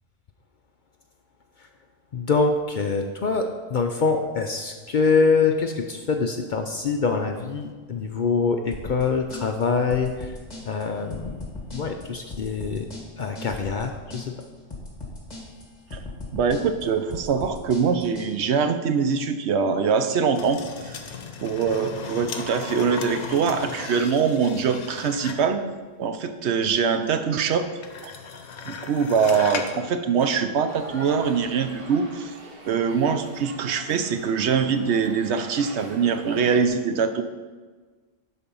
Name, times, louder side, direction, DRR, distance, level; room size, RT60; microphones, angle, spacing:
voice 1, 2.1-10.4 10.6-11.4 11.7-12.9 13.2-14.3, left 4 dB, 55° left, 5 dB, 0.6 m, -24 dB
sound 1, 8.7-18.3, left 2 dB, 35° left, 1.8 m, -38 dB
voice 2, 16.3-21.0 21.4-25.6 26.0-27.7 28.0-28.1 28.7-32.3 32.6-37.2, right 6 dB, 70° right, 9 dB, 0.9 m, -23 dB
sound 2, 20.3-25.6 27.8-29.8 30.2-30.3, left 5 dB, 70° left, 1.1 m, -36 dB
sound 3, 30.7-36.7, right 2 dB, 55° right, 1.2 m, -43 dB
11.5 x 4.3 x 5.4 m, 1.4 s
omnidirectional pair, 1.2 m